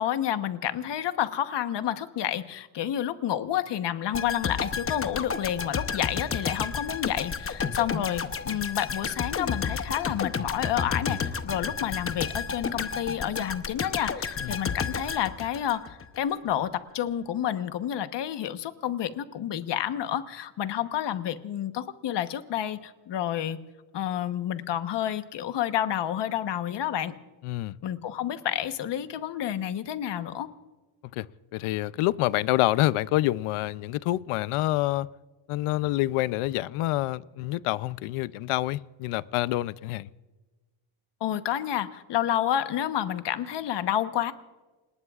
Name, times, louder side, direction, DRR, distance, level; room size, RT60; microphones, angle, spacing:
voice 1, 0.0-23.6 23.9-27.1 27.8-30.5 41.2-44.3, left 11 dB, 55° left, 10 dB, 1.1 m, -29 dB
sound 1, 4.1-16.1 16.5-16.6, left 6 dB, 25° left, 0.8 m, -31 dB
voice 2, 27.4-27.8 31.1-31.3 31.5-35.1 35.5-40.1, left 17 dB, 85° left, 18 dB, 0.6 m, -27 dB
29.0 x 19.5 x 2.4 m, 1.2 s
cardioid pair, 135°, 49 cm